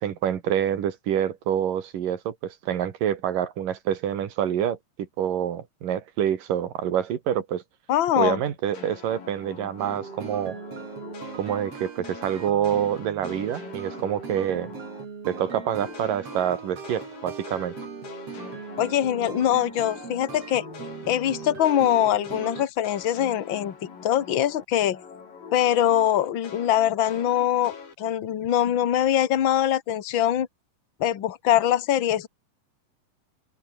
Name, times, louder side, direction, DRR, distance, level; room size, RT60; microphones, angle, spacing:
voice 1, 0.0-7.6 8.2-10.6 11.3-14.7 15.3-17.7, right 9 dB, 70° right, 3.7 m, -27 dB
voice 2, 7.9-8.4 18.8-20.7 21.1-23.8 24.0-25.0 25.5-30.5 31.0-32.3, left 11 dB, 45° left, 1.8 m, -23 dB
sound 1, 8.7-15.0 15.3-24.6 24.9-27.9, left 6 dB, 75° left, 6.2 m, -44 dB
sound 2, 9.8-22.7, right 5 dB, 45° right, 4.2 m, -39 dB
open air
omnidirectional pair, 4.0 m